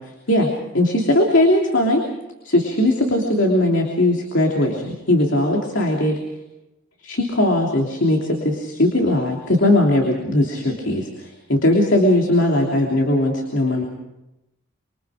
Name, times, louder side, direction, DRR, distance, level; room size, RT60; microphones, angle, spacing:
voice 1, 0.7-2.0 2.4-6.2 7.0-13.8, left 1 dB, 60° left, 1 dB, 3.1 m, -19 dB
27.0 x 24.0 x 5.1 m, 0.92 s
head